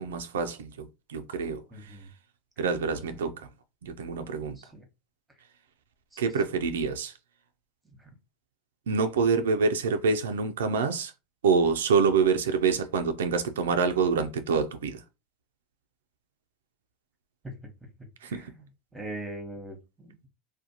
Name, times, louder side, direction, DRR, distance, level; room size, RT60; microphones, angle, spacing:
voice 1, 0.0-2.0 2.6-3.5 3.8-4.6 6.2-7.1 8.9-11.1 11.4-15.0 18.2-18.5, right 5 dB, 85° right, 0.3 m, -26 dB
voice 2, 1.7-2.1 3.1-3.3 4.6-4.8 6.1-6.2 8.0-8.2 17.4-17.6 18.2-18.5 18.9-20.3, right 1 dB, 5° right, 0.9 m, -41 dB
2.5 x 2.1 x 2.7 m
hypercardioid pair, 100°, 0 cm